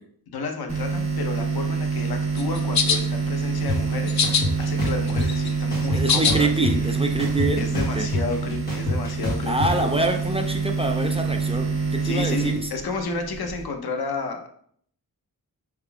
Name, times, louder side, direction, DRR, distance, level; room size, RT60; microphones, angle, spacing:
voice 1, 0.3-6.5 7.6-9.9 12.0-14.5, left 4 dB, 90° left, 4 dB, 0.7 m, -31 dB
sound 1, 0.7-13.6, right 5 dB, 50° right, 1.2 m, -26 dB
sound 2, 2.4-3.0 4.1-4.4 4.9-6.3, left 6 dB, 50° left, 0.4 m, -22 dB
sound 3, 3.7-3.8 4.2-5.3 5.7-6.9 7.2-9.7, left 2 dB, 25° left, 1.3 m, -27 dB
voice 2, 5.9-8.1 9.5-12.7, right 2 dB, 15° right, 3 dB, 0.3 m, -26 dB
5.7 x 3.6 x 2.3 m, 0.64 s
wide cardioid pair, 155°, 36 cm